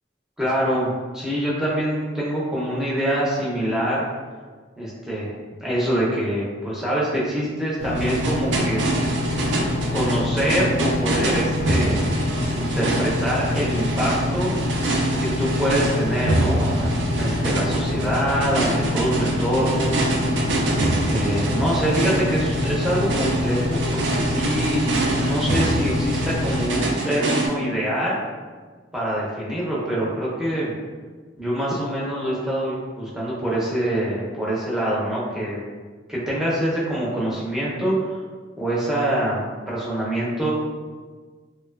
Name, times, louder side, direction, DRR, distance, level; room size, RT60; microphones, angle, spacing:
voice 1, 0.4-4.1 4.8-5.3 5.6-8.8 9.9-12.0 12.5-14.5 15.2-20.0 20.7-28.2 28.9-30.7 31.4-35.6 36.1-38.2 38.6-40.5, right 1 dB, 5° right, -7 dB, 0.5 m, -25 dB
Engine, 7.8-26.7, left 2 dB, 65° left, 0.4 m, -26 dB
sound 1, 8.0-27.5, right 2 dB, 70° right, 0.4 m, -25 dB
2.8 x 2.2 x 2.3 m, 1.5 s
head